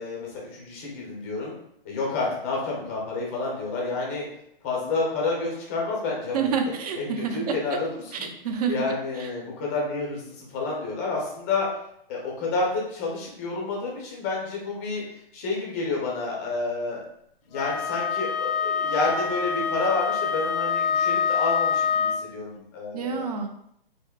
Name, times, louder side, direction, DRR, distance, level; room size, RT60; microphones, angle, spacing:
voice 1, 0.0-1.5 1.8-4.3 4.6-6.5 7.0-7.9 8.2-8.3 8.7-11.7 12.1-15.0 15.3-17.0 17.5-23.2, left 3 dB, 15° left, -3 dB, 0.4 m, -29 dB
voice 2, 6.3-7.8 8.1-8.7 9.2-9.3 22.9-23.5, right 6 dB, 45° right, 5 dB, 0.4 m, -28 dB
Wind instrument woodwind instrument, 17.5-22.3, left 6 dB, 75° left, 0.5 m, -26 dB
3.5 x 2.6 x 2.2 m, 0.73 s
hypercardioid pair, 155°, 29 cm